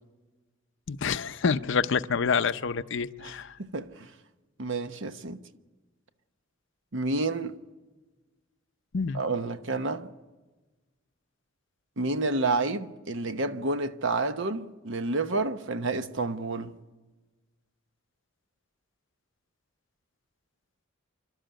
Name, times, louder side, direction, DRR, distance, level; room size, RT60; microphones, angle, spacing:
voice 1, 0.9-3.5 8.9-9.2, left 5 dB, 65° left, 0.6 m, -27 dB
voice 2, 3.6-4.1 4.6-5.4 6.9-7.6 9.1-10.1 12.0-16.7, right 3 dB, 65° right, 1.0 m, -29 dB
27.5 x 12.5 x 9.0 m
head